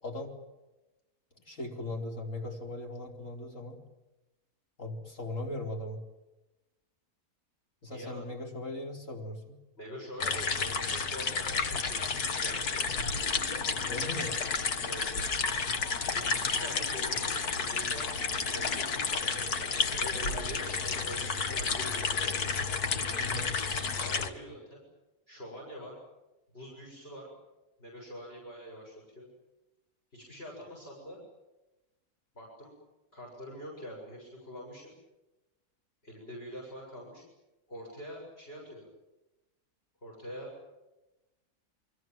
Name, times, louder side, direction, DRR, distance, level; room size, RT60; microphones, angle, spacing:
voice 1, 0.0-0.3 1.4-3.8 4.8-6.0 7.8-9.6 13.9-14.3 23.2-23.5, left 2 dB, 55° left, 1 dB, 5.0 m, -38 dB
voice 2, 7.9-8.2 9.8-12.9 14.3-14.4 14.8-15.2 16.1-18.1 18.5-22.1 23.9-24.8 25.3-26.0 26.5-27.3 27.8-29.3 30.1-31.2 32.3-32.7 33.1-34.9 36.0-37.2 37.7-38.9 40.0-40.5, equal, 40° left, -2 dB, 7.6 m, -45 dB
sound 1, 10.2-24.3, left 5 dB, 85° left, 2.2 m, -31 dB
29.0 x 24.0 x 7.7 m, 1.0 s
omnidirectional pair, 1.6 m